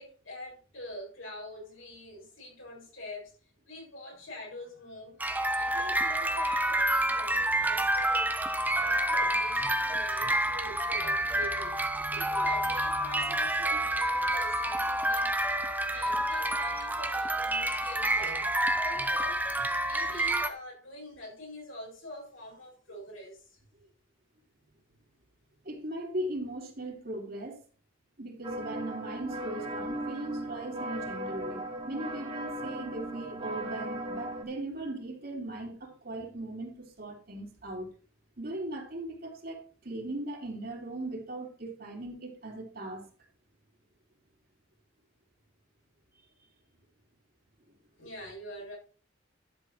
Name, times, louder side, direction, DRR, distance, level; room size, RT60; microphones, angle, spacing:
voice 1, 0.0-3.3 3.6-5.2 5.5-11.8 12.1-15.4 15.9-23.6 48.0-48.8, left 1 dB, 90° left, 6.9 m, -45 dB
sound 1, 5.2-20.5, right 1 dB, 10° right, 0.9 m, -28 dB
voice 2, 25.6-27.6 28.2-37.9 38.4-43.0, right 1 dB, 50° right, 3.2 m, -38 dB
sound 2, 28.4-34.4, right 1 dB, 25° right, 2.3 m, -37 dB
11.5 x 7.7 x 4.4 m
head